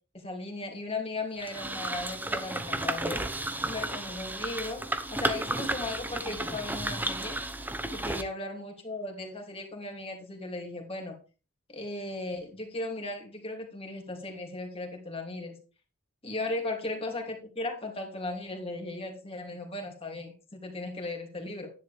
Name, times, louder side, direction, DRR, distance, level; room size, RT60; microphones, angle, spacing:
voice 1, 0.1-3.2 3.6-4.8 5.1-7.4 7.9-11.1 11.7-15.5 16.2-21.7, left 2 dB, 30° left, 2 dB, 2.8 m, -37 dB
sound 1, 1.4-8.2, right 1 dB, 10° right, 0.9 m, -33 dB
11.0 x 10.0 x 3.5 m, 0.33 s
head